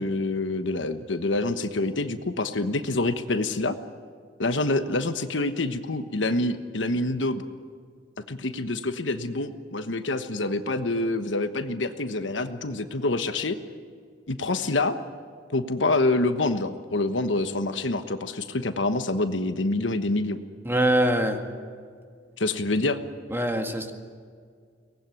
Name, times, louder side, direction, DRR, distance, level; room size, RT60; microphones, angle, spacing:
voice 1, 0.0-3.8 4.4-7.4 8.3-13.6 14.3-15.0 15.5-20.4 22.4-23.0, left 2 dB, 75° left, 9 dB, 1.2 m, -26 dB
voice 2, 20.7-21.4 23.3-23.9, right 1 dB, 10° right, 5 dB, 1.9 m, -23 dB
23.5 x 19.0 x 9.4 m, 2.1 s
head